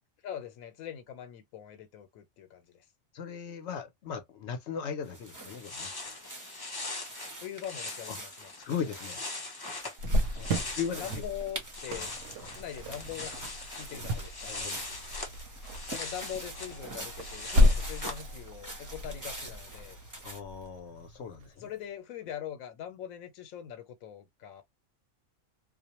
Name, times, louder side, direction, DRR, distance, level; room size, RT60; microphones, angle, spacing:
voice 1, 0.2-2.9 7.4-8.5 10.4-10.6 10.9-12.1 12.5-13.3 13.7-14.6 15.9-20.0 21.6-24.6, left 10 dB, 85° left, 1.0 m, -42 dB
voice 2, 3.1-5.9 8.1-8.2 8.6-9.2 10.7-11.2 11.9-12.1 12.4-12.6 14.4-14.8 20.2-21.7, left 7 dB, 65° left, 0.8 m, -38 dB
sound 1, 5.0-20.4, right 1 dB, 20° right, 0.7 m, -46 dB
sound 2, 5.4-11.3 11.6-18.2, left 3 dB, 35° left, 0.3 m, -41 dB
Cricket, 10.0-21.4, left 1 dB, 70° right, 0.9 m, -32 dB
2.4 x 2.0 x 2.8 m
omnidirectional pair, 1.4 m